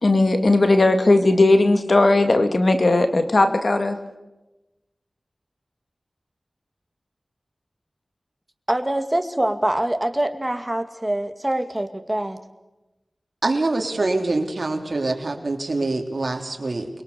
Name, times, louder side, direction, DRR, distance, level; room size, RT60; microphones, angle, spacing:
voice 1, 0.0-4.0, left 2 dB, 60° left, 7 dB, 2.3 m, -17 dB
voice 2, 8.7-12.4, right 1 dB, 20° right, 7 dB, 2.2 m, -24 dB
voice 3, 13.4-16.9, right 2 dB, 60° right, 4 dB, 3.2 m, -24 dB
28.0 x 22.5 x 7.0 m, 1.0 s
wide cardioid pair, 50°, 0 cm